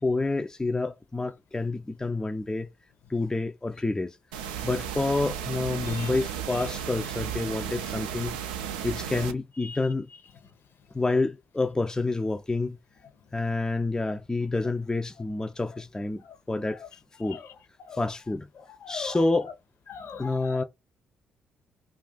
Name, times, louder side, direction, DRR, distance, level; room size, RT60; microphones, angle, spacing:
voice 1, 0.0-2.7 3.1-4.2 4.6-8.4 8.8-10.1 10.9-12.8 13.3-16.8 17.2-17.4 17.9-18.5 18.9-19.5 20.2-20.6, left 3 dB, 15° left, 0.4 m, -28 dB
sound 1, 4.3-9.3, right 9 dB, 80° right, 0.3 m, -34 dB
voice 2, 17.2-18.0 18.6-19.3 19.9-20.6, left 6 dB, 55° left, 0.7 m, -42 dB
2.4 x 2.3 x 3.8 m
hypercardioid pair, 45°, 4 cm